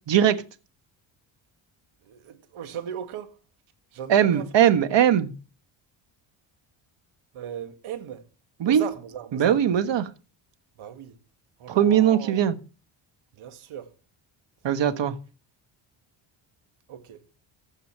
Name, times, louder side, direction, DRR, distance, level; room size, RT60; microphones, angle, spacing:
voice 1, 0.1-0.4 4.1-5.3 8.6-8.8 9.3-10.1 11.7-12.5 14.6-15.1, right 9 dB, 55° right, 1.6 m, -20 dB
voice 2, 2.0-3.4 3.9-4.8 7.3-8.3 8.6-9.6 10.8-11.2 11.6-12.5 13.3-13.9 16.9-17.3, right 9 dB, 75° right, 2.1 m, -38 dB
15.5 x 5.6 x 7.4 m
cardioid pair, 105°, 50 cm